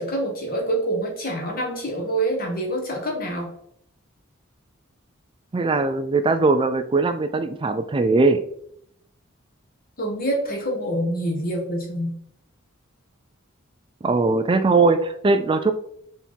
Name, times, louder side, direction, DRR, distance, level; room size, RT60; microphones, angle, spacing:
voice 1, 0.0-3.5 10.0-12.1, right 1 dB, 45° left, 1 dB, 1.7 m, -26 dB
voice 2, 5.5-8.4 14.0-15.7, right 3 dB, 25° right, 9 dB, 0.3 m, -20 dB
5.7 x 4.2 x 4.5 m, 0.71 s
head